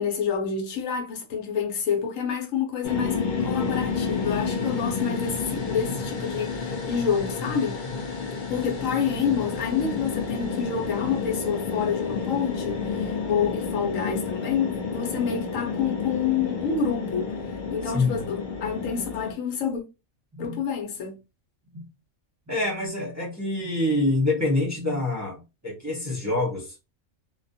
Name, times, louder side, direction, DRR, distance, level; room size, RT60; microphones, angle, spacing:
voice 1, 0.0-7.8 8.5-19.8 20.4-21.2, left 7 dB, 75° left, 1.1 m, -28 dB
sound 1, 2.8-19.3, left 5 dB, 55° left, 0.5 m, -30 dB
voice 2, 22.5-26.7, left 2 dB, 15° right, 0.7 m, -26 dB
2.5 x 2.2 x 2.6 m
omnidirectional pair, 1.4 m